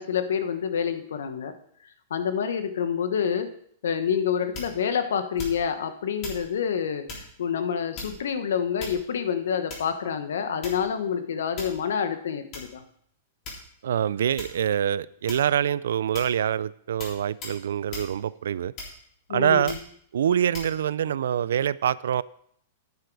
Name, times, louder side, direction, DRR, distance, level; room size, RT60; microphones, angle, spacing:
voice 1, 0.0-1.5 2.1-3.5 3.8-7.0 7.4-12.8 19.3-19.8, left 7 dB, 85° left, 9 dB, 1.1 m, -27 dB
sound 1, 4.5-4.9 5.4-5.8 6.2-6.5 7.1-7.3 7.9-8.3 8.8-9.2 9.7-10.0 10.6-11.0 11.6-11.9 12.5-12.7 13.4-13.9 14.4-14.6 15.3-15.6 16.1-16.4 17.0-17.2 17.4-17.6 17.9-18.1 18.8-19.2 19.7-19.9 20.5-20.7, left 3 dB, 35° left, 3.5 m, -38 dB
voice 2, 13.8-18.7 19.3-19.8 20.1-22.2, right 9 dB, 80° right, 20 dB, 0.3 m, -25 dB
9.6 x 7.9 x 4.7 m, 0.66 s
hypercardioid pair, 145°, 0 cm